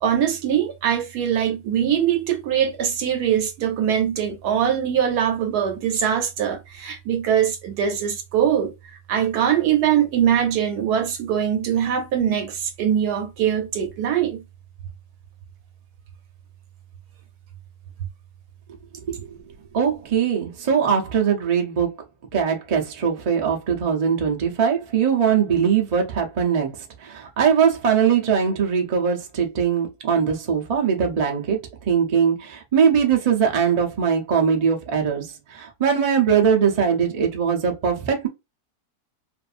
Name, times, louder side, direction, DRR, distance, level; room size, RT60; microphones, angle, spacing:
voice 1, 0.0-8.7 9.1-14.4, right 9 dB, 75° right, 1.2 m, -22 dB
voice 2, 19.7-21.9 22.3-31.6 31.9-38.3, right 7 dB, 50° right, 0.4 m, -21 dB
2.5 x 2.5 x 2.4 m
omnidirectional pair, 1.7 m